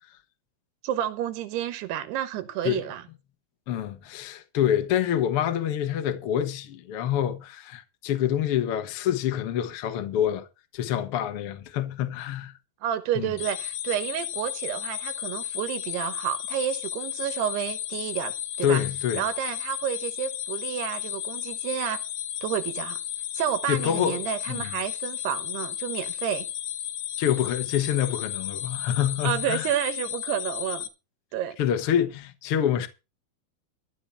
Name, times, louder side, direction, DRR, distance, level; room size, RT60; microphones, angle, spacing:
voice 1, 0.8-3.0 12.8-18.3 18.6-18.8 19.1-22.0 22.4-23.0 23.3-26.5 29.2-30.9 31.3-31.6, right 11 dB, 90° right, 3.1 m, -30 dB
voice 2, 3.7-10.5 10.7-12.6 13.1-13.3 18.6-19.2 23.7-24.2 24.5-24.7 27.2-29.6 31.6-32.9, left 10 dB, 70° left, 1.3 m, -26 dB
sound 1, 13.4-30.9, left 12 dB, 85° left, 3.4 m, -34 dB
14.0 x 5.1 x 8.6 m
omnidirectional pair, 4.6 m